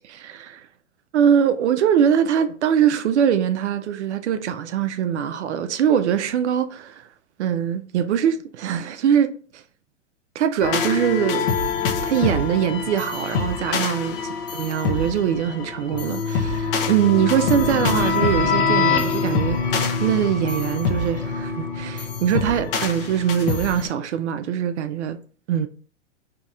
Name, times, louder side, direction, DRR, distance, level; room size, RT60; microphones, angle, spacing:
voice 1, 0.0-0.7 1.1-7.1 7.4-9.6 10.4-11.6 12.0-14.2 14.5-19.6 20.0-25.2 25.5-25.7, right 9 dB, 70° right, 0.5 m, -22 dB
sound 1, 10.6-23.9, left 5 dB, 45° left, 0.7 m, -24 dB
3.9 x 2.8 x 2.4 m
hypercardioid pair, 110°, 36 cm